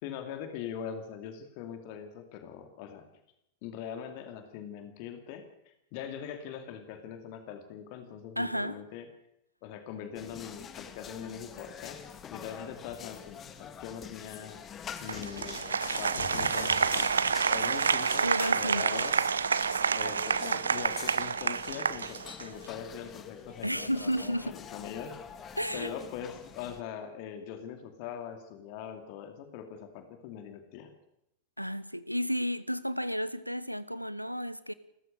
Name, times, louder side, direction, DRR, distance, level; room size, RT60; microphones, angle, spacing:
voice 1, 0.0-3.0 3.6-9.1 9.6-12.0 12.3-14.6 15.0-19.2 20.0-25.2 25.7-30.9, left 8 dB, 45° left, 2.5 m, -42 dB
voice 2, 8.4-8.8 18.2-19.1 23.6-24.6 25.6-25.9 31.6-34.7, equal, 90° right, 1.0 m, -32 dB
sound 1, 10.2-26.8, left 7 dB, 25° left, 2.0 m, -46 dB
Applause, 15.1-22.7, right 6 dB, 70° right, 0.7 m, -28 dB
sound 2, 15.8-18.3, left 6 dB, 65° left, 3.8 m, -42 dB
30.0 x 14.0 x 6.8 m
figure-of-eight pair, 90°, 0 cm